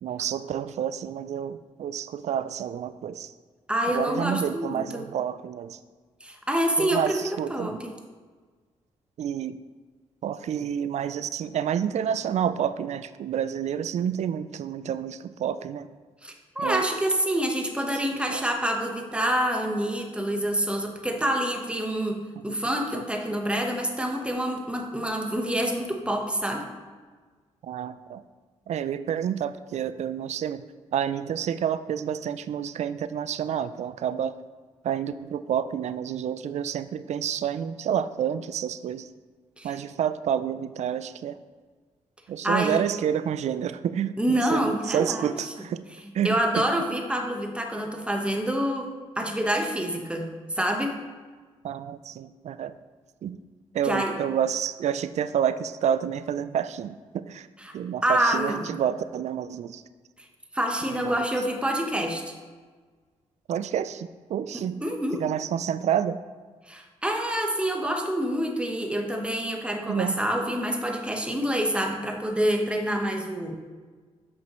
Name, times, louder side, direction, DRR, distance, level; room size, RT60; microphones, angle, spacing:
voice 1, 0.0-3.3 3.9-5.8 6.8-7.8 9.2-9.6 10.2-15.9 16.6-16.8 18.1-18.5 22.5-22.6 22.9-23.0 27.6-28.2 28.7-30.6 30.9-34.3 34.8-39.1 39.6-41.4 42.3-45.8 46.1-46.6 51.6-52.7 53.2-53.4 53.7-57.5 57.7-59.8 60.9-61.3 63.5-64.8 65.1-66.2 69.8-70.2, right 9 dB, 65° right, 13 dB, 0.4 m, -29 dB
voice 2, 3.7-5.0 6.2-7.9 16.2-26.7 39.6-39.8 42.4-42.8 44.2-45.7 46.2-51.0 53.8-54.1 57.6-57.8 58.0-58.7 60.5-62.3 64.5-65.2 66.7-73.6, right 1 dB, 10° right, 3 dB, 1.1 m, -27 dB
7.8 x 5.3 x 3.1 m, 1.4 s
supercardioid pair, 55°, 12 cm